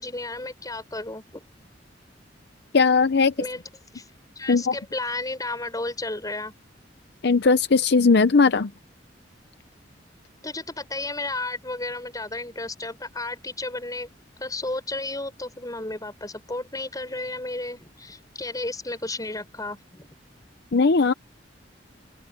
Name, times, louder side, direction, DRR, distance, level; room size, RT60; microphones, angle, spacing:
voice 1, 0.0-1.4 3.1-3.6 3.9-4.0 4.4-6.5 10.4-14.1 14.4-20.1, left 2 dB, 20° left, 6.5 m, -33 dB
voice 2, 2.7-3.3 4.5-4.7 7.2-8.7 20.7-21.1, left 4 dB, 65° left, 0.7 m, -18 dB
open air
head